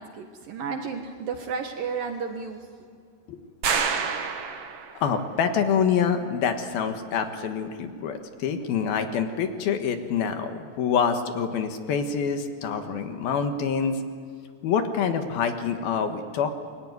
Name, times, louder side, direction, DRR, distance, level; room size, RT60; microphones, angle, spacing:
voice 1, 0.0-2.6, right 5 dB, 60° right, 4 dB, 2.5 m, -32 dB
sound 1, 3.6-5.1, right 6 dB, 80° right, 1.3 m, -27 dB
voice 2, 5.0-14.0 14.6-16.5, left 6 dB, 65° left, 6 dB, 2.9 m, -26 dB
27.5 x 22.5 x 9.5 m, 2.2 s
omnidirectional pair, 5.5 m